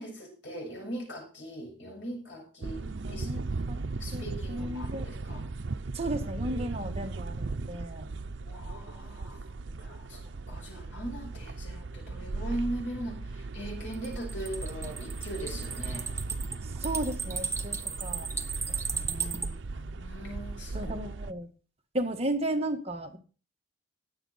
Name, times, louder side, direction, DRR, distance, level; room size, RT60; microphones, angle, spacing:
voice 1, 0.0-3.4 4.0-5.4 8.4-16.1 19.7-20.9, right 1 dB, 85° left, 0 dB, 7.0 m, -40 dB
sound 1, 2.6-21.3, right 3 dB, 85° right, 0.7 m, -37 dB
voice 2, 3.0-3.8 4.1-5.1 5.9-8.1 16.6-18.3 18.7-19.6 20.7-21.5 21.9-23.2, right 1 dB, 35° right, 4 dB, 1.7 m, -35 dB
sound 2, 13.9-19.5, right 5 dB, 15° right, 1.1 m, -35 dB
19.5 x 7.7 x 4.2 m, 0.37 s
head